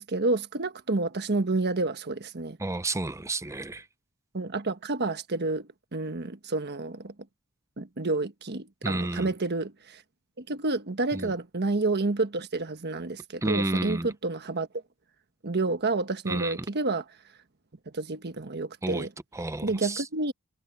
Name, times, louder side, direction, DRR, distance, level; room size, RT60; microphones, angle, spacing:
voice 1, 0.0-2.6 4.3-7.1 7.8-10.0 10.4-14.7 15.4-17.0 17.9-19.1 19.6-20.3, right 3 dB, 50° right, 1.3 m, -29 dB
voice 2, 2.6-3.9 8.8-9.3 11.1-11.3 13.4-14.1 16.3-16.7 18.8-19.1 19.3-20.1, right 2 dB, 15° right, 0.6 m, -31 dB
head